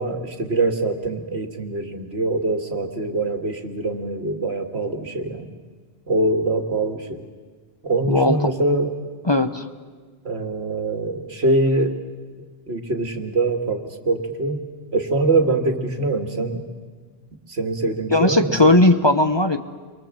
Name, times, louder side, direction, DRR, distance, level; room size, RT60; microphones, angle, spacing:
voice 1, 0.0-5.5 6.1-7.2 7.8-8.9 10.2-12.0 12.7-14.6 14.9-16.6 17.5-18.8, right 2 dB, 75° right, 5 dB, 2.4 m, -23 dB
voice 2, 8.1-8.5 9.2-9.7 18.1-19.6, left 2 dB, 25° left, 8 dB, 1.0 m, -17 dB
30.0 x 23.5 x 7.6 m, 1.5 s
omnidirectional pair, 1.1 m